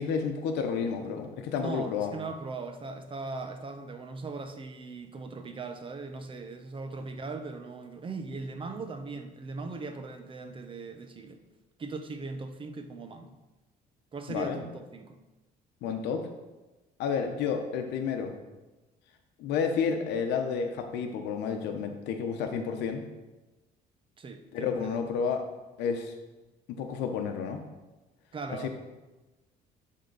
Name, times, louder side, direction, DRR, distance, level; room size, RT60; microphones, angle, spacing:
voice 1, 0.0-2.1 14.3-14.6 15.8-16.3 17.0-18.3 19.4-23.0 24.5-25.4 25.8-26.1 26.7-27.6 28.6-28.7, left 6 dB, 90° left, 5 dB, 0.9 m, -30 dB
voice 2, 1.6-11.4 11.8-13.3 14.1-15.2 24.2-25.0 28.3-28.7, right 3 dB, 30° right, 7 dB, 0.8 m, -39 dB
11.0 x 3.8 x 4.0 m, 1.1 s
cardioid pair, 110°, 17 cm